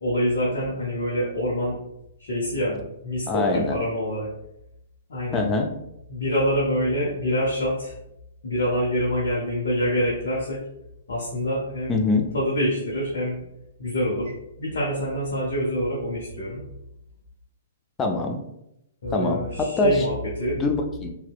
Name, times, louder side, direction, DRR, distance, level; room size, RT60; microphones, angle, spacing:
voice 1, 0.0-1.8 2.2-4.3 5.1-5.5 6.1-7.9 8.4-10.6 11.1-11.9 12.3-13.4 13.8-14.3 14.6-16.6 19.0-20.6, equal, 70° left, -5 dB, 0.6 m, -26 dB
voice 2, 3.3-3.8 5.3-5.7 11.9-12.3 18.0-18.4 19.1-20.0 20.6-21.1, left 3 dB, 20° left, 3 dB, 0.3 m, -24 dB
2.6 x 2.1 x 2.2 m, 0.82 s
hypercardioid pair, 125°, 0 cm